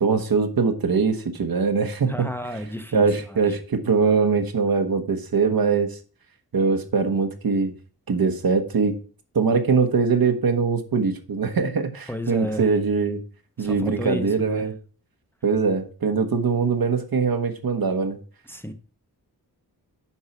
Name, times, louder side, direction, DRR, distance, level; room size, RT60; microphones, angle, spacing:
voice 1, 0.0-2.1 2.9-6.0 6.5-7.7 8.1-8.9 9.3-13.2 13.6-14.7 15.4-18.2, right 5 dB, 65° right, 1.2 m, -22 dB
voice 2, 2.1-3.6 12.1-12.7 13.6-14.7 18.5-18.7, equal, 5° left, 0.8 m, -32 dB
7.2 x 4.7 x 5.8 m
wide cardioid pair, 75°, 38 cm